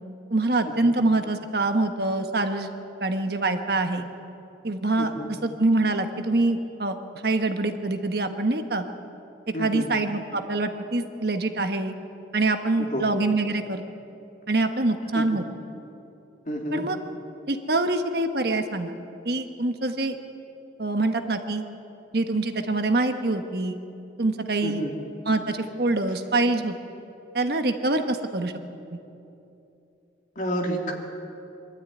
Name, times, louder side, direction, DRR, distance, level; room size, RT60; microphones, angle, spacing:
voice 1, 0.3-2.7 3.0-4.1 4.6-5.1 5.4-8.8 9.6-11.9 12.3-13.8 14.5-15.4 16.7-17.0 17.5-18.9 19.2-20.2 20.8-21.6 22.1-23.8 24.2-24.8 25.2-26.7 27.3-28.5 28.9-29.0, right 2 dB, 55° right, 6 dB, 1.2 m, -25 dB
voice 2, 5.0-5.3 9.5-9.9 12.8-13.0 15.1-15.3 16.5-16.8 24.6-24.9 30.4-30.9, equal, 40° left, 0 dB, 2.9 m, -29 dB
24.0 x 12.5 x 9.5 m, 2.8 s
head